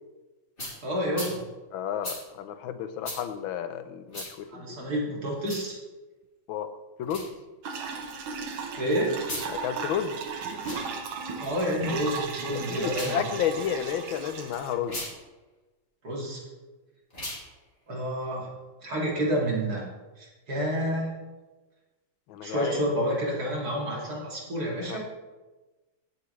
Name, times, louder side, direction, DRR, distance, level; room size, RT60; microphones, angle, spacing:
Household - Cloth Iron Spray, 0.6-0.7 1.1-1.3 2.0-2.2 3.0-3.2 4.1-4.3 5.4-5.7 7.0-7.3 9.2-9.5 10.5-10.8 12.8-13.2 14.8-15.1 17.1-17.4, left 1 dB, 25° left, 3.2 m, -36 dB
voice 1, 0.8-1.4 4.5-5.8 8.8-9.2 11.4-13.2 16.0-16.4 17.9-18.5 18.8-19.9 20.2-21.1 22.4-25.1, equal, 50° right, -3 dB, 2.9 m, -29 dB
voice 2, 1.7-4.8 6.5-6.7 7.0-7.3 9.5-10.2 12.7-15.0 22.3-22.8 24.9-25.1, left 8 dB, 85° left, 10 dB, 1.5 m, -31 dB
sound 1, 7.6-14.8, right 5 dB, 85° right, 1.9 m, -36 dB
17.5 x 7.4 x 3.2 m, 1.2 s
omnidirectional pair, 2.2 m